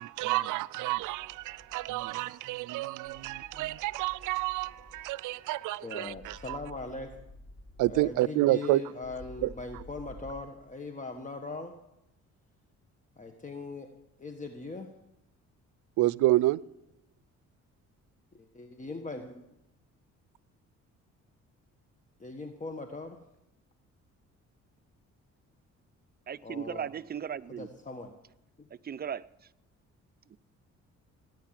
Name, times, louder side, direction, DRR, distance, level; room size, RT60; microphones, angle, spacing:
voice 1, 0.0-6.6 7.8-8.8 9.4-9.5 16.0-16.6, right 17 dB, 85° right, 0.5 m, -29 dB
sound 1, 0.9-2.0 3.0-5.1 6.1-8.1 9.0-10.3, left 1 dB, 90° left, 7.8 m, -51 dB
voice 2, 5.8-7.1 7.9-11.7 13.2-13.9 14.2-14.9 18.3-19.4 22.2-23.2 26.4-26.9 27.5-28.1 28.6-28.7, left 3 dB, 25° left, 1.4 m, -40 dB
voice 3, 26.3-27.7 28.8-29.2 30.3-30.4, right 8 dB, 30° right, 0.5 m, -36 dB
18.5 x 9.4 x 7.6 m
cardioid pair, 90°, 30 cm